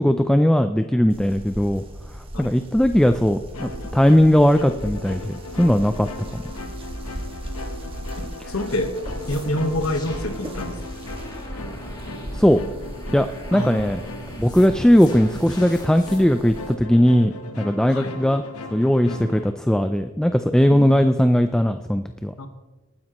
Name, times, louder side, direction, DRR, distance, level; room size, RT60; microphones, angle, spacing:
voice 1, 0.0-1.8 2.4-6.4 12.3-12.6 13.1-14.0 14.4-18.4 18.7-22.3, equal, 5° left, 8 dB, 0.3 m, -18 dB
sound 1, 1.1-16.7, equal, 25° right, 1.3 m, -37 dB
sound 2, 3.5-19.5, left 1 dB, 90° left, 1.0 m, -37 dB
voice 2, 8.2-9.0 9.3-10.8 13.5-13.9 17.9-18.2 19.1-19.4 20.7-21.1 22.4-22.5, left 1 dB, 70° left, 7 dB, 1.3 m, -27 dB
sound 3, 9.0-16.2, left 1 dB, 20° left, 1.6 m, -42 dB
19.0 x 9.5 x 3.0 m, 1.2 s
head